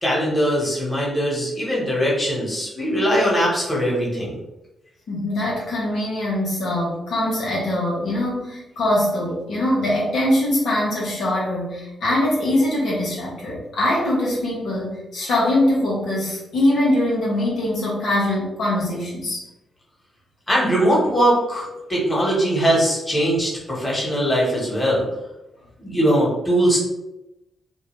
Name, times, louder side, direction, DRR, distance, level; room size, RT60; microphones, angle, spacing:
voice 1, 0.0-4.4 20.5-25.1 25.8-26.8, equal, 20° left, -5 dB, 1.3 m, -21 dB
voice 2, 5.1-19.4, left 1 dB, 75° left, -5 dB, 0.9 m, -22 dB
2.7 x 2.2 x 3.1 m, 0.94 s
cardioid pair, 65°, 0 cm